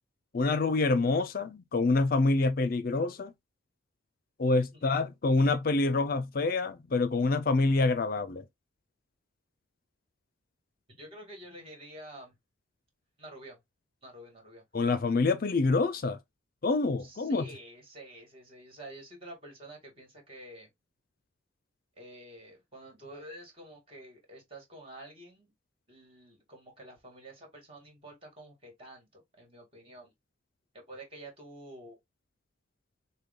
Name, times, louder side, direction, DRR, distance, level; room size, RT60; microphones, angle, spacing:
voice 1, 0.3-3.3 4.4-8.4 14.7-16.2 16.6-17.4, left 3 dB, 45° left, 0.4 m, -26 dB
voice 2, 10.9-12.3 13.2-13.6 14.0-14.6 17.0-20.7 22.0-25.5 25.9-30.1 30.7-32.0, right 1 dB, 30° right, 2.0 m, -49 dB
6.5 x 2.2 x 3.7 m
head